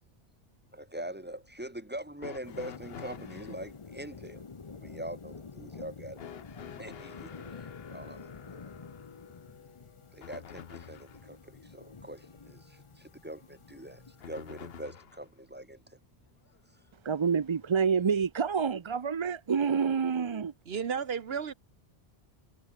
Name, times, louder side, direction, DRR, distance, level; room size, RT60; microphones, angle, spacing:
voice 1, 0.7-4.4 4.7-6.2 6.8-8.7 10.1-16.0, right 1 dB, 10° right, 2.7 m, -43 dB
sound 1, 2.2-3.6 6.2-11.3 14.2-15.3 16.5-16.6 17.7-17.8, left 8 dB, 70° left, 1.1 m, -48 dB
sound 2, 2.4-14.8, left 5 dB, 35° left, 0.8 m, -49 dB
voice 2, 17.0-20.5, right 6 dB, 40° right, 0.5 m, -28 dB
voice 3, 20.7-21.5, right 6 dB, 75° right, 1.3 m, -33 dB
omnidirectional pair, 1.0 m